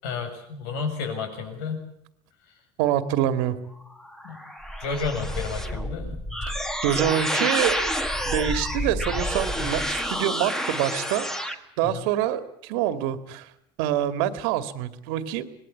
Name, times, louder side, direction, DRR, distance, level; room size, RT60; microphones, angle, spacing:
voice 1, 0.0-1.8 4.2-4.4 4.8-6.2 9.6-9.8 11.9-12.0, left 5 dB, 85° left, 6 dB, 7.1 m, -31 dB
voice 2, 2.8-3.6 6.4-7.9 8.2-13.5 13.8-15.5, right 11 dB, 80° right, 11 dB, 2.1 m, -26 dB
sound 1, 3.9-11.6, equal, 5° left, 1.6 m, -29 dB
25.5 x 20.0 x 8.6 m, 0.72 s
cardioid pair, 150°, 12 cm